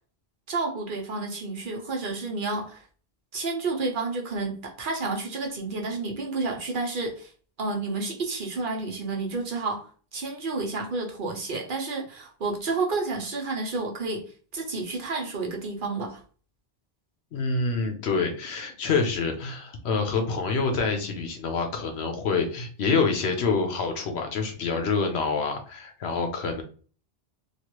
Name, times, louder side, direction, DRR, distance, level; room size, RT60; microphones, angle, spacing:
voice 1, 0.5-2.8 3.3-7.3 7.6-14.3 14.5-16.2, right 3 dB, 55° right, 0.9 m, -30 dB
voice 2, 17.3-26.6, left 4 dB, 85° left, 1.0 m, -27 dB
3.1 x 2.5 x 2.9 m
omnidirectional pair, 1.1 m